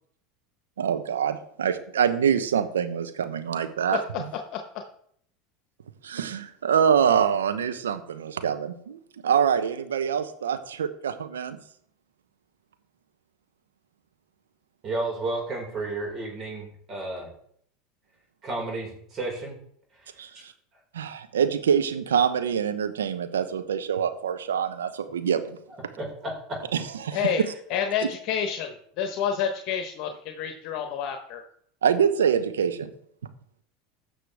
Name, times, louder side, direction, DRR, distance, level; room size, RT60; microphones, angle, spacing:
voice 1, 0.8-4.3 6.0-11.6 20.2-20.5 20.9-25.6 26.7-27.3 31.8-32.9, right 8 dB, 85° right, 10 dB, 0.9 m, -25 dB
voice 2, 14.8-17.3 18.4-19.6 26.0-26.6 27.3-27.4, right 2 dB, 40° right, 0 dB, 4.9 m, -32 dB
voice 3, 27.1-27.4 27.7-31.4, left 8 dB, 55° left, 5 dB, 1.1 m, -28 dB
15.5 x 6.4 x 3.5 m, 0.65 s
hypercardioid pair, 85°, 0 cm